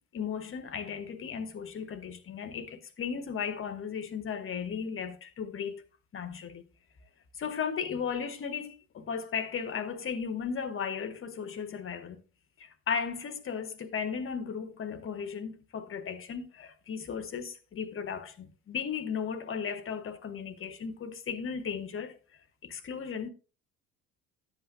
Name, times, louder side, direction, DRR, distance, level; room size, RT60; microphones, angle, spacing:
voice 1, 0.1-5.8 6.1-6.6 7.4-12.2 12.6-22.1 22.6-23.3, left 6 dB, 30° left, 1.2 m, -36 dB
11.5 x 7.9 x 2.6 m
figure-of-eight pair, 60°, 41 cm